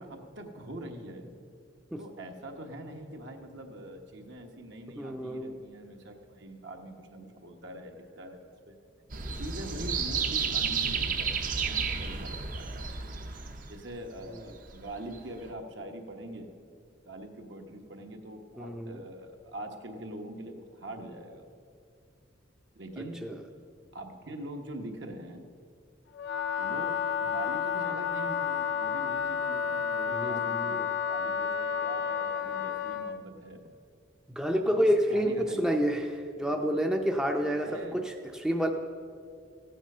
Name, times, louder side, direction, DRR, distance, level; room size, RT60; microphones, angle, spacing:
voice 1, 0.0-1.3 2.0-8.8 9.4-11.3 11.6-12.9 13.7-16.5 17.1-21.5 22.7-23.2 23.9-25.4 26.6-33.7 34.6-35.6 37.6-38.0, right 1 dB, 65° right, 3 dB, 1.3 m, -43 dB
voice 2, 5.0-5.6 18.6-19.0 23.2-23.4 30.1-30.9 34.3-36.1 36.4-38.7, equal, 5° right, 3 dB, 0.5 m, -29 dB
sound 1, 9.1-13.9 14.6-15.2 15.5-15.6, right 5 dB, 45° right, 0.8 m, -32 dB
Wind instrument woodwind instrument, 26.1-33.2, left 7 dB, 60° left, 0.5 m, -31 dB
15.0 x 9.1 x 5.5 m, 2.3 s
head